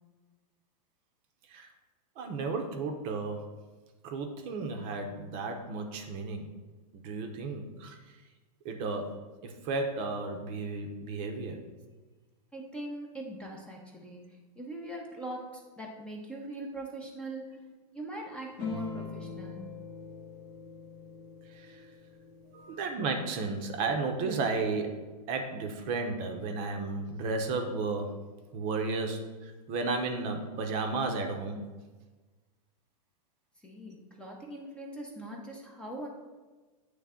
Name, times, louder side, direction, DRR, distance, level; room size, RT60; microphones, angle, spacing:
voice 1, 2.2-3.5 4.0-6.5 6.9-8.0 8.6-11.6 21.5-21.8 22.5-28.2 28.5-31.6, right 3 dB, 35° right, 4 dB, 0.7 m, -33 dB
voice 2, 12.5-17.6 17.9-19.7 33.6-36.1, right 1 dB, 5° left, -1 dB, 0.7 m, -41 dB
sound 1, 18.6-23.5, left 3 dB, 40° left, 0.9 m, -43 dB
9.1 x 3.3 x 3.6 m, 1.3 s
hypercardioid pair, 145°, 21 cm